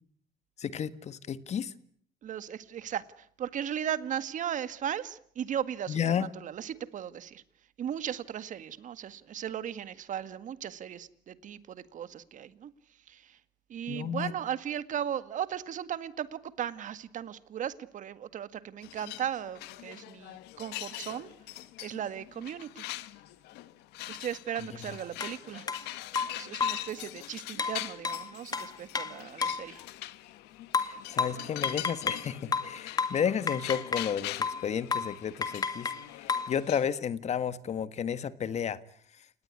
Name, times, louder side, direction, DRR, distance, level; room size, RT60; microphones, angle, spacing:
voice 1, 0.6-1.7 5.9-6.3 13.9-14.3 30.8-38.8, left 8 dB, 40° left, 14 dB, 1.6 m, -32 dB
voice 2, 2.2-7.4 7.8-12.7 13.1-13.4 13.7-21.3 21.8-22.8 24.1-25.7 26.2-29.8, right 9 dB, 50° right, 13 dB, 1.8 m, -37 dB
sound 1, 18.8-36.9, left 16 dB, 90° left, 1.4 m, -43 dB
sound 2, 25.2-25.3 25.7-25.8 26.2-26.9 27.6-29.7 30.7-32.3 32.5-34.1 34.4-34.7 34.9-35.2 35.4-36.5, left 5 dB, 25° left, 2.0 m, -31 dB
29.5 x 18.5 x 9.7 m, 0.64 s
cardioid pair, 130°, 17 cm